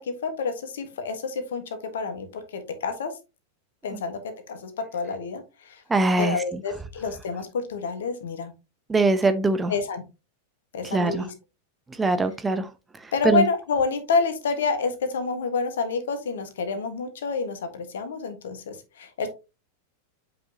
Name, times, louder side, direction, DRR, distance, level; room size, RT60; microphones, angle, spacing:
voice 1, 0.1-3.1 3.8-4.2 4.5-5.8 6.2-8.5 9.7-10.0 10.7-11.3 13.1-19.3, left 4 dB, 60° left, 8 dB, 1.6 m, -28 dB
voice 2, 5.9-6.4 8.9-9.7 10.8-11.2 12.0-12.7 13.0-13.4, right 3 dB, 10° right, 9 dB, 0.8 m, -22 dB
8.4 x 5.3 x 2.9 m, 0.28 s
figure-of-eight pair, 90°, 0 cm